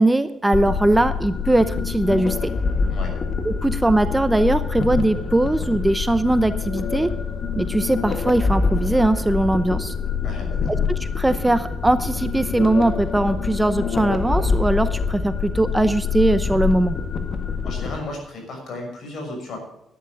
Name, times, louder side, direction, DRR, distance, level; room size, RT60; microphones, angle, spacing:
voice 1, 0.0-2.5 3.4-7.1 7.5-9.9 10.7-17.0, right 1 dB, 10° right, 11 dB, 0.8 m, -20 dB
sound 1, 0.5-18.0, left 5 dB, 45° left, 1.8 m, -25 dB
voice 2, 10.2-10.7 17.6-19.6, left 2 dB, 65° left, 2 dB, 6.2 m, -34 dB
12.0 x 10.0 x 6.3 m, 0.85 s
cardioid pair, 90°, 0 cm